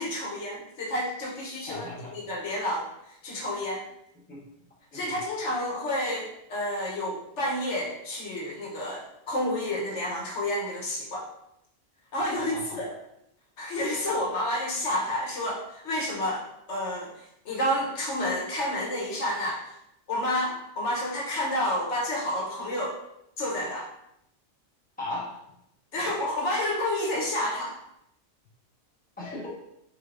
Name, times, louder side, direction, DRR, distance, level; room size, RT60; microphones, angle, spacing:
voice 1, 0.0-2.9 3.2-3.8 4.9-11.3 12.1-12.9 13.6-19.7 20.1-23.0 23.4-23.9 25.9-27.7, left 1 dB, 70° left, -4 dB, 1.2 m, -30 dB
voice 2, 1.7-2.3 4.3-4.4 4.9-5.2 12.3-12.8 25.0-25.4 29.2-29.5, left 2 dB, 10° left, -7 dB, 1.0 m, -37 dB
3.8 x 3.2 x 2.4 m, 0.80 s
omnidirectional pair, 1.2 m